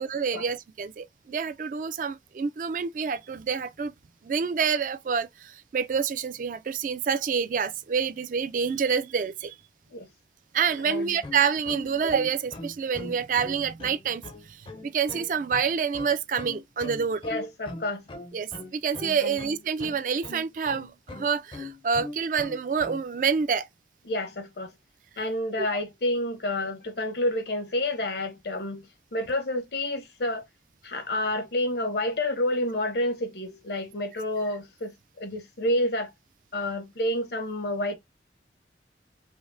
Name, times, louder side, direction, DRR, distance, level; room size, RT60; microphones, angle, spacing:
voice 1, 0.0-3.9 4.2-9.6 10.5-17.2 18.3-23.7 25.6-25.7, right 6 dB, 45° right, 0.3 m, -27 dB
voice 2, 10.8-11.2 17.2-18.1 19.2-19.4 24.0-24.7 25.2-30.4 30.8-36.1 36.5-38.0, left 1 dB, 70° left, 0.9 m, -29 dB
sound 1, 11.2-23.0, left 2 dB, 30° left, 0.5 m, -40 dB
5.0 x 2.0 x 2.5 m
head